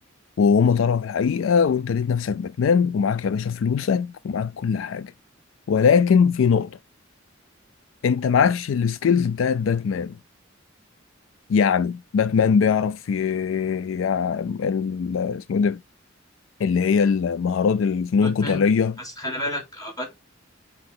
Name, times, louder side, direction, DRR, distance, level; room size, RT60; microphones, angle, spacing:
voice 1, 0.4-5.1 5.7-6.8 8.0-10.2 11.5-15.8 16.6-18.9, left 6 dB, 70° left, 0.4 m, -21 dB
voice 2, 18.2-18.6 19.2-20.1, equal, 20° left, 3.3 m, -31 dB
7.7 x 4.3 x 3.6 m
head